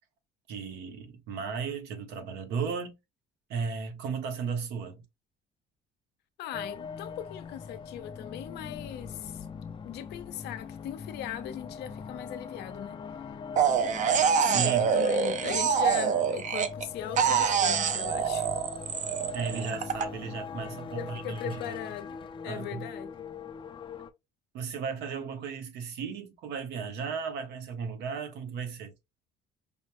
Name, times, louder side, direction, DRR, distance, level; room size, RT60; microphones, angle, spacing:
voice 1, 0.5-3.0 3.5-5.0 14.1-14.9 19.3-21.8 22.5-22.9 24.5-28.9, right 6 dB, 85° right, 1.1 m, -35 dB
voice 2, 6.4-9.5 9.8-13.0 14.4-18.6 20.9-23.3, left 10 dB, 80° left, 0.7 m, -39 dB
sound 1, 6.5-24.1, left 6 dB, 30° left, 0.5 m, -41 dB
sound 2, 13.6-16.8 17.2-20.0, right 7 dB, 45° right, 0.6 m, -26 dB
5.1 x 2.1 x 3.0 m
cardioid pair, 110°, 17 cm